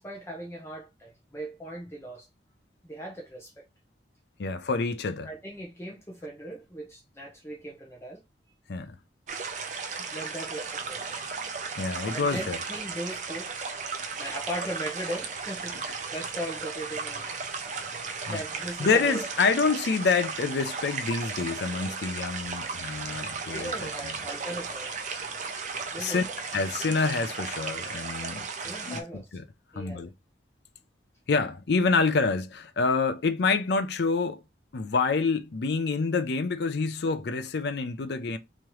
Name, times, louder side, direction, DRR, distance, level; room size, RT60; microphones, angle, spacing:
voice 1, 0.0-2.3 2.9-3.6 5.2-8.2 10.0-11.2 12.1-13.5 14.2-17.3 18.3-19.3 23.5-24.9 25.9-26.4 28.6-29.3 29.7-30.1, right 1 dB, 15° left, 0.9 m, -38 dB
voice 2, 4.4-5.3 8.7-8.9 11.8-12.6 18.3-18.4 18.8-24.1 26.0-26.2 26.5-28.5 28.8-29.4 29.8-30.1 31.3-34.4 34.7-38.4, left 4 dB, 60° left, 0.5 m, -27 dB
sound 1, 9.3-29.0, right 5 dB, 40° right, 0.6 m, -35 dB
3.6 x 3.1 x 3.1 m
head